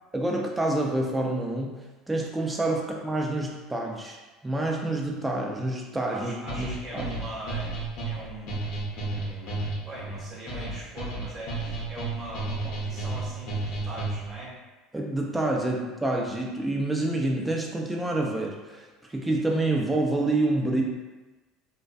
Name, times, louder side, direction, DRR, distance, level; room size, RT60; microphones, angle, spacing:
voice 1, 0.1-4.2 4.4-6.7 6.9-7.1 14.9-20.8, right 2 dB, 10° right, 0 dB, 0.5 m, -27 dB
voice 2, 6.1-8.6 9.1-14.6, right 1 dB, 35° right, -6 dB, 1.1 m, -41 dB
sound 1, 6.5-14.4, right 2 dB, 60° left, 0.8 m, -32 dB
2.3 x 2.2 x 2.5 m, 1.2 s
hypercardioid pair, 70°, 0 cm